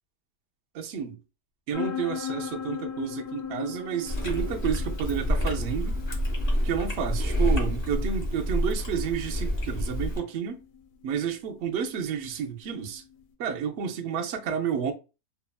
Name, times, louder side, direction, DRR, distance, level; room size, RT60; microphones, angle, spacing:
voice 1, 0.7-1.2 1.7-6.0 6.6-10.6 11.0-13.0 13.4-14.9, right 8 dB, 70° right, 0.6 m, -30 dB
sound 1, 1.7-13.2, left 9 dB, 90° left, 1.2 m, -40 dB
Chewing mastication, 4.1-10.2, equal, 35° left, 0.6 m, -28 dB
2.8 x 2.3 x 2.3 m
omnidirectional pair, 1.7 m